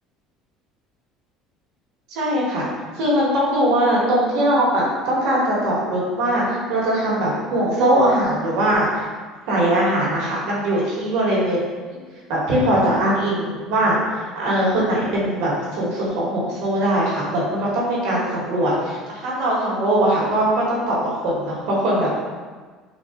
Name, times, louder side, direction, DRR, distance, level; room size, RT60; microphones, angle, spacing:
voice 1, 2.1-2.7 2.9-9.1 9.5-11.6 12.3-22.1, right 1 dB, 75° right, -5 dB, 1.3 m, -21 dB
4.1 x 2.4 x 3.6 m, 1.4 s
supercardioid pair, 120°, 0 cm